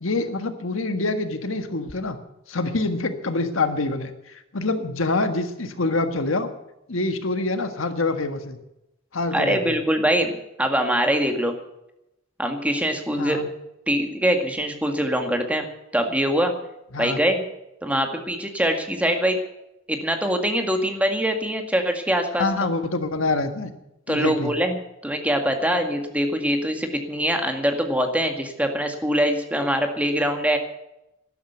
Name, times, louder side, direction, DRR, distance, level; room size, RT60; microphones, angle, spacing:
voice 1, 0.0-2.2 2.5-6.5 6.9-8.6 9.1-9.8 13.2-13.5 16.9-17.2 22.4-23.7 24.1-24.5, left 2 dB, 85° left, 8 dB, 1.6 m, -26 dB
voice 2, 9.3-11.6 12.4-13.4 13.9-15.7 15.9-16.5 17.0-17.4 17.8-19.4 19.9-22.7 24.1-24.8 25.0-30.6, equal, 5° right, 4 dB, 2.0 m, -23 dB
13.0 x 12.0 x 8.0 m, 0.88 s
head